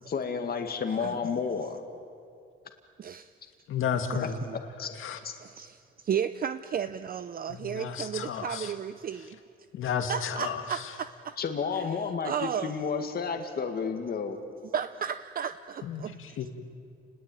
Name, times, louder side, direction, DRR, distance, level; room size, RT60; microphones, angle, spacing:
voice 1, 0.1-1.8 4.2-4.9 5.2-5.3 11.4-14.4, left 6 dB, 50° left, 5 dB, 2.0 m, -31 dB
voice 2, 3.0-3.3 4.1-4.3 5.4-9.4 10.1-11.4 11.7-12.8 14.7-16.5, right 8 dB, 45° right, 12 dB, 0.6 m, -34 dB
voice 3, 3.7-4.3 5.0-5.2 7.6-8.7 9.7-10.6 15.9-16.5, left 7 dB, 80° left, 6 dB, 2.0 m, -32 dB
30.0 x 20.0 x 9.2 m, 2.4 s
cardioid pair, 130°, 21 cm